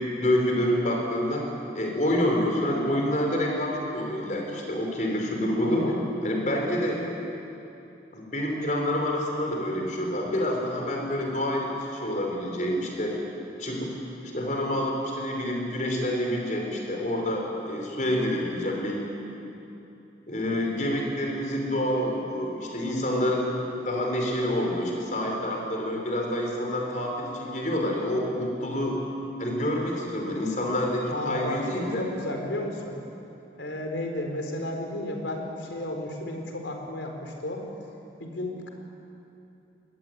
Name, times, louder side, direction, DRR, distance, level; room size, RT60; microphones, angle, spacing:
voice 1, 0.2-1.4 1.7-5.9 6.2-7.0 8.1-13.2 13.6-13.9 14.3-19.1 20.3-23.5 23.8-29.0 29.4-32.0, left 1 dB, 40° left, 0 dB, 5.2 m, -27 dB
voice 2, 5.6-6.0 31.1-33.0 33.6-37.6 38.2-38.7, left 1 dB, 85° left, 3 dB, 4.4 m, -33 dB
23.0 x 20.5 x 9.5 m, 2.9 s
head